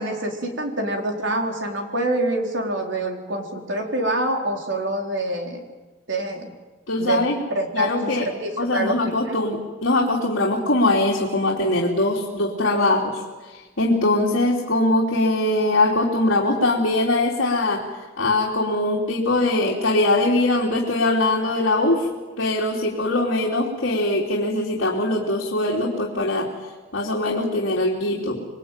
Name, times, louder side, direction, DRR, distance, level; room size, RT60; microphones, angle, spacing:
voice 1, 0.0-5.6 6.1-6.5 7.0-7.2 7.5-9.0 9.2-9.4, right 1 dB, 65° right, 2 dB, 4.2 m, -26 dB
voice 2, 6.9-7.4 7.7-8.3 8.6-13.2 13.5-17.8 18.2-22.1 22.4-26.5 26.9-28.5, left 2 dB, 70° left, -3 dB, 3.5 m, -21 dB
27.0 x 21.0 x 9.2 m, 1.3 s
head